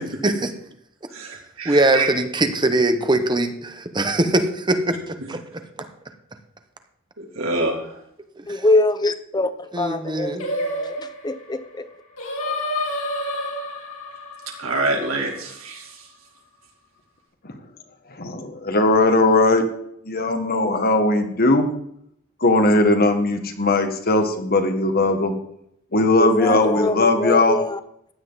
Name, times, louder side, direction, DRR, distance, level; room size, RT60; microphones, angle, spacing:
voice 1, 1.1-2.1 7.2-7.9 14.6-15.9, right 2 dB, 80° right, 3.3 m, -26 dB
voice 2, 1.6-5.6 8.4-8.6 9.7-10.5, right 2 dB, 20° right, 1.1 m, -22 dB
voice 3, 8.5-11.9 26.2-27.8, left 2 dB, 20° left, 0.8 m, -24 dB
Singing, 10.4-15.7, left 1 dB, 80° left, 3.8 m, -30 dB
voice 4, 18.2-19.6 20.1-21.7 22.4-25.4 25.9-27.6, left 2 dB, 45° left, 1.7 m, -19 dB
15.5 x 10.5 x 4.1 m
head